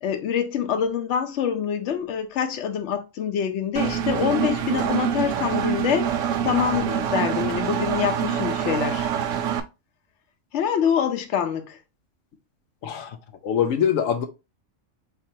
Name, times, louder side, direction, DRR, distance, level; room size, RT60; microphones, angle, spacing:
voice 1, 0.0-6.1 6.4-9.1 10.5-11.8, left 8 dB, 65° left, 1.0 m, -25 dB
Engine, 3.8-9.6, right 9 dB, 80° right, 1.0 m, -25 dB
voice 2, 12.8-13.2 13.4-14.3, left 8 dB, 90° left, 1.0 m, -23 dB
4.2 x 3.7 x 2.7 m
omnidirectional pair, 1.3 m